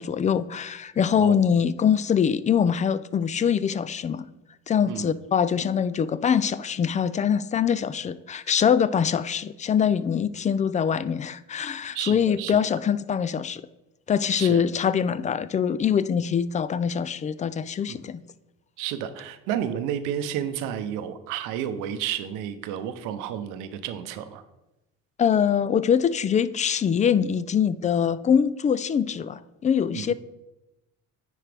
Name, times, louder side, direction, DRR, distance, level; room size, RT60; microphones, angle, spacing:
voice 1, 0.0-4.3 4.7-13.6 14.1-18.2 25.2-30.1, left 7 dB, 25° left, 16 dB, 0.3 m, -23 dB
voice 2, 1.1-1.4 4.9-5.1 11.9-12.6 14.4-14.6 17.9-18.0 18.8-24.4 29.9-30.1, right 10 dB, 85° right, 10 dB, 0.7 m, -31 dB
9.5 x 4.7 x 3.4 m, 0.96 s
supercardioid pair, 85°, 31 cm